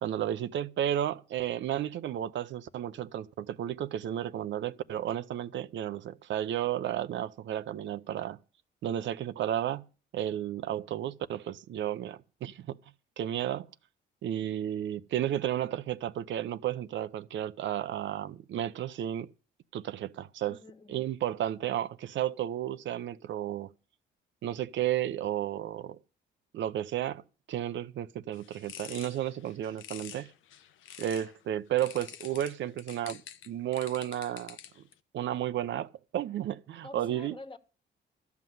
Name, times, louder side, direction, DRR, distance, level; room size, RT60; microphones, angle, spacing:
voice 1, 0.0-8.4 8.8-9.8 10.1-12.8 13.2-13.7 14.2-19.3 19.7-20.6 20.9-23.7 24.4-26.0 26.5-27.2 27.5-30.3 31.0-34.6 35.1-37.4, right 11 dB, 70° right, 0.7 m, -33 dB
voice 2, 20.5-21.1 36.8-37.6, left 3 dB, 25° left, 1.5 m, -47 dB
sound 1, 28.3-31.4 31.8-34.9, left 10 dB, 85° left, 0.9 m, -48 dB
13.0 x 6.0 x 9.3 m
cardioid pair, 90°, 20 cm